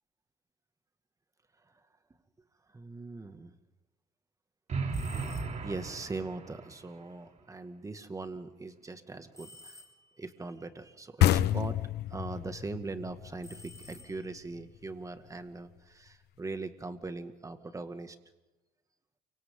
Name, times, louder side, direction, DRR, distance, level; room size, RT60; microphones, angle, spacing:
voice 1, 2.7-3.5 5.3-9.8 10.2-11.8 12.1-18.2, right 3 dB, 20° right, 8 dB, 2.1 m, -41 dB
sound 1, 4.7-6.7, right 4 dB, 45° right, 3.2 m, -36 dB
sound 2, 4.9-5.8 9.3-10.3 13.4-14.5, left 2 dB, 20° left, 3.7 m, -53 dB
sound 3, 11.2-14.6, left 13 dB, 75° left, 0.9 m, -29 dB
29.5 x 25.0 x 3.9 m, 1.0 s
cardioid pair, 110°, 17 cm